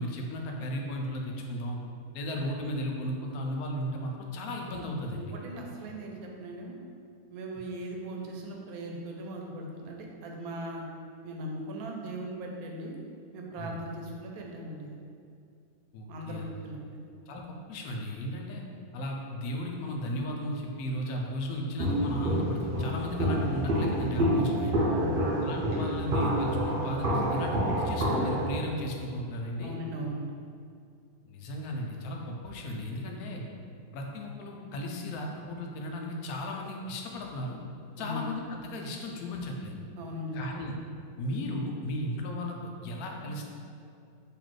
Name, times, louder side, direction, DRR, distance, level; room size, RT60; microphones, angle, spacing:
voice 1, 0.0-1.8 2.1-5.4 7.6-7.7 13.6-13.8 15.9-16.5 17.3-18.6 18.9-24.7 25.4-29.7 31.3-33.4 33.9-37.6 38.0-39.8 40.3-40.7 41.2-43.4, left 1 dB, 85° left, 1 dB, 1.1 m, -35 dB
voice 2, 5.1-6.8 7.3-10.9 11.2-13.0 13.3-15.0 16.1-17.0 24.9-25.5 29.6-30.3 38.0-38.2 40.0-40.5, right 1 dB, 80° right, 0 dB, 1.1 m, -39 dB
Walk footsteps, 21.8-28.5, equal, 50° right, 0.7 m, -28 dB
4.0 x 3.0 x 3.1 m, 2.5 s
omnidirectional pair, 1.5 m